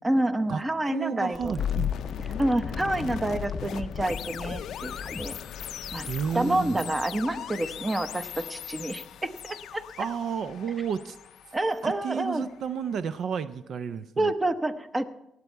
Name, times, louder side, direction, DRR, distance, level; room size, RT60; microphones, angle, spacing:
voice 1, 0.0-1.6 2.4-5.4 5.9-6.1 6.3-9.8 11.5-12.5 14.2-15.0, right 1 dB, 20° right, 10 dB, 0.9 m, -28 dB
voice 2, 0.9-1.9 6.1-6.9 10.0-11.2 11.8-14.3, right 7 dB, 65° right, 13 dB, 0.5 m, -32 dB
sound 1, 1.3-6.9, left 1 dB, 5° left, 0.6 m, -41 dB
sound 2, 1.6-12.6, left 10 dB, 75° left, 0.4 m, -36 dB
19.0 x 8.2 x 4.5 m, 0.86 s
cardioid pair, 90°, 0 cm